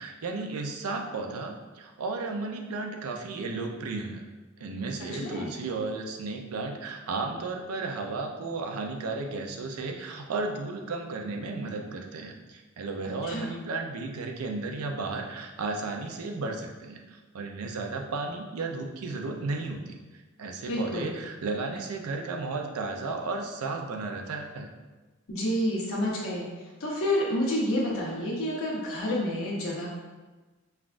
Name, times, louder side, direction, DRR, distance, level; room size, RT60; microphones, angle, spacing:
voice 1, 0.0-4.2 4.6-20.0 20.4-24.7, right 3 dB, 80° right, 2 dB, 0.5 m, -34 dB
voice 2, 5.1-5.5 13.2-13.5 20.7-21.1 25.3-26.5 26.8-29.9, left 1 dB, 65° left, -4 dB, 1.0 m, -29 dB
5.6 x 2.4 x 2.5 m, 1.2 s
head